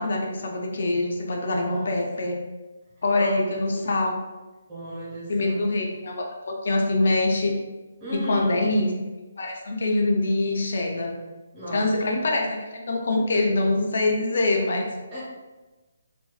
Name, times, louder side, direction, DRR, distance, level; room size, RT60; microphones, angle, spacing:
voice 1, 0.0-2.4 3.0-4.1 5.3-7.5 8.1-8.9 9.4-11.1 11.7-14.9, left 2 dB, 60° left, 1 dB, 0.4 m, -24 dB
voice 2, 1.5-2.0 3.1-3.3 4.7-5.6 8.0-8.6 11.5-11.9 15.1-15.2, equal, 20° right, -10 dB, 1.0 m, -35 dB
2.6 x 2.2 x 2.3 m, 1.2 s
hypercardioid pair, 170°, 0 cm